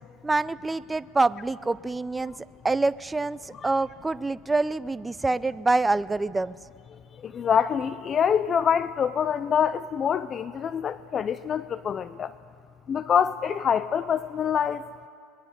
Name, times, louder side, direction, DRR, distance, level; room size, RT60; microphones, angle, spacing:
voice 1, 0.2-2.4 2.6-6.6, right 3 dB, 15° right, 17 dB, 0.5 m, -26 dB
voice 2, 7.2-12.3 12.9-14.9, left 8 dB, 35° left, 14 dB, 0.5 m, -25 dB
25.5 x 21.0 x 6.7 m, 2.2 s
supercardioid pair, 100°, 0 cm